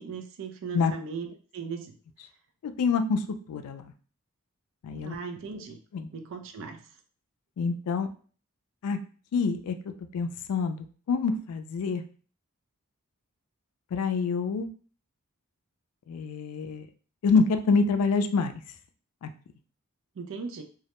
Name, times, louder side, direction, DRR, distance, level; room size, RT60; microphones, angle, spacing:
voice 1, 0.0-1.9 5.0-5.8 6.1-6.9 20.2-20.6, right 5 dB, 60° right, 5 dB, 0.4 m, -38 dB
voice 2, 2.6-3.2 3.5-3.9 4.8-5.2 5.9-6.1 7.6-8.1 8.8-9.0 9.3-9.8 10.1-12.0 13.9-14.7 16.1-16.9 17.2-18.5 19.2-19.3, left 4 dB, 85° left, 8 dB, 0.3 m, -26 dB
2.2 x 2.1 x 2.8 m, 0.41 s
head